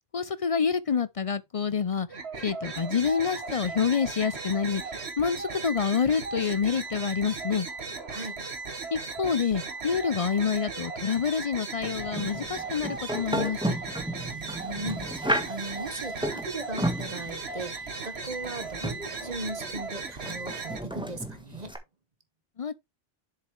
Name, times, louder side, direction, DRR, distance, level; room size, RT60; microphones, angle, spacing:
voice 1, 0.1-2.1 2.4-4.8 5.2-7.7 8.9-13.8 22.6-22.7, left 6 dB, 45° left, 0.4 m, -27 dB
sound 1, 2.1-20.8, right 4 dB, 65° right, 1.8 m, -37 dB
sound 2, 11.7-21.8, equal, 5° right, 1.4 m, -34 dB
voice 2, 14.3-21.8, right 2 dB, 35° right, 1.5 m, -38 dB
7.6 x 7.2 x 3.2 m
omnidirectional pair, 1.2 m